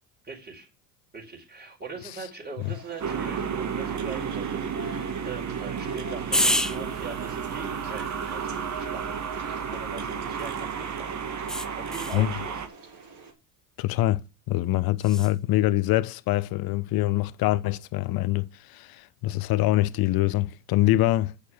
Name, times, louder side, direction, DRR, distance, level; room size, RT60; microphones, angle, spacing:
voice 1, 0.2-0.7 1.1-11.2 11.8-12.6, right 4 dB, 20° right, 4.5 m, -41 dB
sound 1, 2.6-13.3, right 3 dB, 55° right, 4.4 m, -46 dB
sound 2, 3.0-12.7, right 7 dB, 35° right, 1.7 m, -32 dB
sound 3, 6.3-10.7 11.5-12.3 15.0-15.3, left 1 dB, ahead, 0.6 m, -32 dB
voice 2, 13.8-14.2 14.5-21.3, left 16 dB, 50° left, 0.9 m, -24 dB
8.5 x 6.5 x 6.9 m
hypercardioid pair, 85°, 46 cm